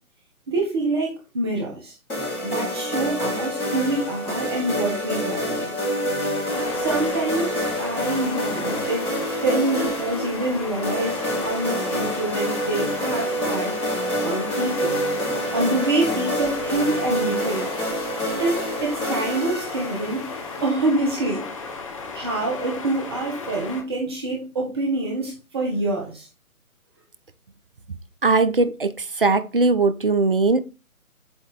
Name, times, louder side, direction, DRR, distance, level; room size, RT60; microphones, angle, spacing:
voice 1, 0.5-1.9 2.4-5.7 6.7-9.1 9.4-13.8 14.2-15.0 15.5-17.7 18.4-20.3 20.6-21.5 22.1-26.3, right 2 dB, 20° right, 0.9 m, -26 dB
sound 1, 2.1-20.7, equal, 80° left, 3.5 m, -27 dB
sound 2, 6.5-23.8, left 4 dB, 25° left, 0.8 m, -35 dB
voice 2, 28.2-28.9 29.2-30.6, right 3 dB, 40° right, 0.4 m, -19 dB
7.8 x 2.7 x 4.4 m
figure-of-eight pair, 145°, 43 cm